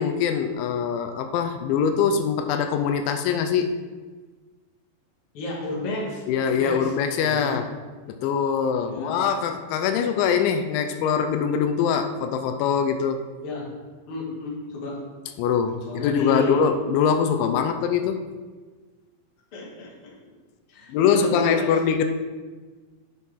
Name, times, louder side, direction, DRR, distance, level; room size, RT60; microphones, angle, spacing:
voice 1, 0.0-3.7 6.3-7.6 8.2-13.2 15.4-18.2 20.9-22.0, left 7 dB, 85° left, 6 dB, 3.0 m, -23 dB
voice 2, 5.3-6.9 7.2-7.6 8.8-9.2 13.4-13.7 14.1-15.0 15.9-16.6 19.5-20.1 20.7-21.7, left 3 dB, 40° left, -4 dB, 2.1 m, -31 dB
9.9 x 7.8 x 3.7 m, 1.4 s
omnidirectional pair, 5.2 m